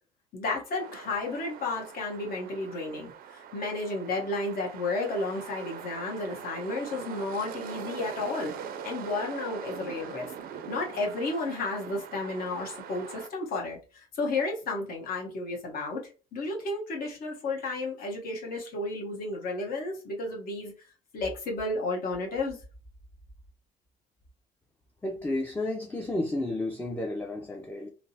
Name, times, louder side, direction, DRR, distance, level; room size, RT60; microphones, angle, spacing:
voice 1, 0.3-8.5 8.8-10.3 10.7-20.7 21.1-22.6, left 2 dB, 60° left, 1.0 m, -32 dB
sound 1, 0.8-13.3, right 7 dB, 60° right, 0.4 m, -42 dB
voice 2, 25.0-27.9, left 2 dB, 10° left, 0.4 m, -32 dB
3.2 x 2.0 x 2.7 m
cardioid pair, 110°, 17 cm